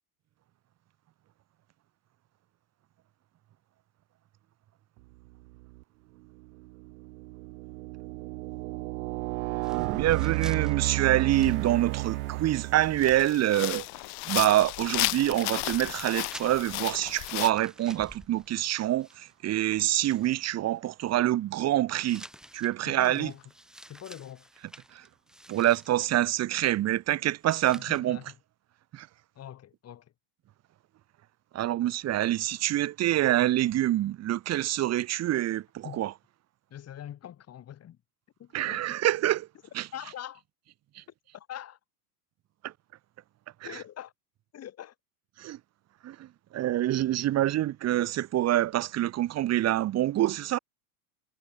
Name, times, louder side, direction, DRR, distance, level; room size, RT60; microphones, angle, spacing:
sound 1, 5.5-5.8 6.4-13.3, right 26 dB, 70° right, 1.4 m, -32 dB
sound 2, 9.6-12.2 12.5-12.6 13.8-13.9 14.1-19.5 19.8-20.5 22.0-26.2 27.4-28.0, equal, ahead, 5.4 m, -51 dB
voice 1, 9.9-13.9 14.3-22.2 22.5-23.3 24.9-25.0 25.5-28.2 28.9-29.1 31.5-36.1 38.5-39.5 39.7-39.9 41.0-41.1 42.6-42.7 43.6-43.7 45.4-45.6 46.0-50.6, right 14 dB, 35° right, 1.8 m, -26 dB
sound 3, 11.3-11.6 12.2-12.3 12.8-17.5, left 29 dB, 55° left, 2.8 m, -33 dB
voice 2, 22.9-23.4 23.9-24.5 27.8-28.4 29.4-30.1 35.8-36.0 36.7-38.0 38.4-38.9 39.9-40.4 41.3-41.8 43.6-44.1 44.5-45.0, left 11 dB, 35° left, 6.9 m, -43 dB
supercardioid pair, 125°, 44 cm